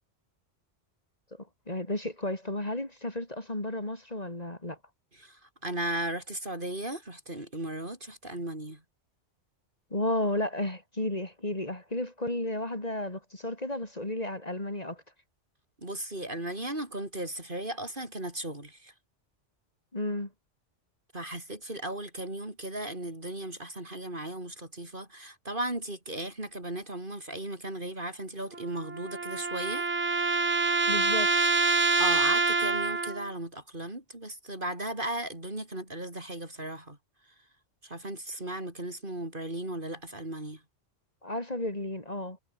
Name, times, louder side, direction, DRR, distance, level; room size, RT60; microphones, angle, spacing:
voice 1, 1.3-4.8 9.9-15.0 19.9-20.3 30.9-31.3 41.2-42.4, left 1 dB, 35° left, 3.7 m, -33 dB
voice 2, 5.2-8.8 15.8-18.9 21.1-29.9 32.0-37.0 37.8-40.6, right 1 dB, 45° right, 5.6 m, -36 dB
sound 1, 28.5-33.3, right 4 dB, 80° right, 2.8 m, -26 dB
omnidirectional pair, 1.2 m